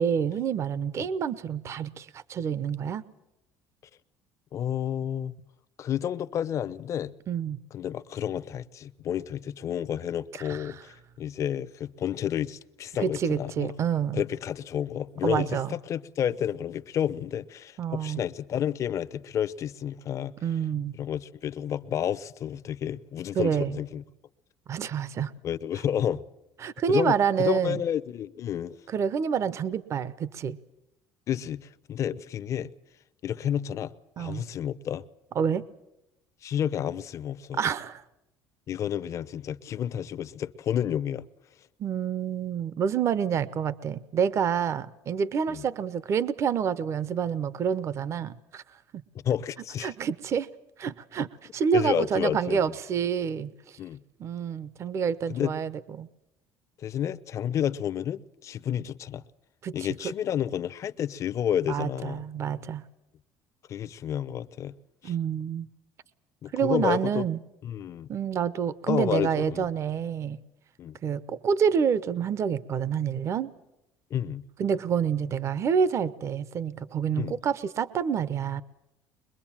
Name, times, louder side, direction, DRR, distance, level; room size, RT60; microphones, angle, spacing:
voice 1, 0.0-3.0 7.3-7.6 10.3-10.7 13.0-14.2 15.2-15.7 17.8-18.2 20.4-20.9 23.3-23.8 24.7-25.3 26.6-27.8 28.9-30.6 34.2-34.5 35.3-35.6 37.5-38.0 41.8-48.8 49.8-50.5 50.8-53.8 54.2-56.1 59.6-59.9 61.7-62.8 65.0-65.7 66.5-67.4 68.1-70.4 71.0-73.5 74.6-78.6, right 7 dB, 40° right, 0.8 m, -28 dB
voice 2, 4.5-5.3 5.8-7.1 7.7-13.7 14.1-20.3 20.9-24.0 25.4-26.2 26.9-28.8 31.3-32.7 33.2-35.0 36.4-37.6 38.7-41.3 45.5-45.6 49.2-49.9 51.7-52.6 53.8-54.0 55.3-55.5 56.8-59.2 59.7-62.2 63.7-64.7 65.0-65.1 66.4-67.2 67.6-68.1 68.9-69.7 70.8-71.0 74.1-74.4 77.2-77.4, left 9 dB, 40° left, 0.8 m, -30 dB
23.0 x 22.0 x 7.4 m
cardioid pair, 140°, 8 cm